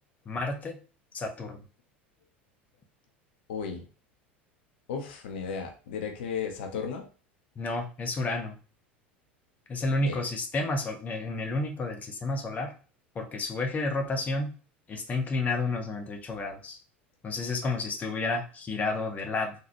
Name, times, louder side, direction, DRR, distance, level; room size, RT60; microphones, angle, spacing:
voice 1, 0.3-0.8 1.1-1.6 7.6-8.6 9.7-12.7 13.1-14.5 14.9-16.8 17.2-19.5, left 2 dB, 25° left, 3 dB, 0.8 m, -31 dB
voice 2, 3.5-3.8 4.9-7.0 10.0-10.2, left 6 dB, 65° left, 3 dB, 0.7 m, -34 dB
3.9 x 2.8 x 2.9 m, 0.36 s
figure-of-eight pair, 75°, 6 cm